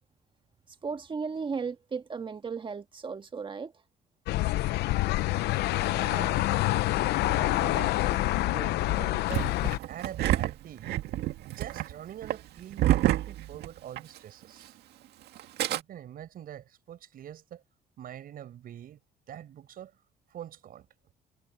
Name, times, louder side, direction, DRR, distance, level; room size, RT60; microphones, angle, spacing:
voice 1, 0.8-3.7, right 5 dB, 30° right, 1.7 m, -35 dB
sound 1, 4.3-9.8, left 17 dB, 80° left, 0.7 m, -27 dB
voice 2, 5.8-9.5 9.9-10.9 11.4-14.7 15.7-17.6 18.0-19.0 19.3-19.9 20.3-20.9, right 10 dB, 60° right, 6.4 m, -44 dB
Engine starting, 9.3-14.2 14.4-14.5 15.4-15.8, right 14 dB, 75° right, 2.0 m, -28 dB
cardioid pair, 110°, 17 cm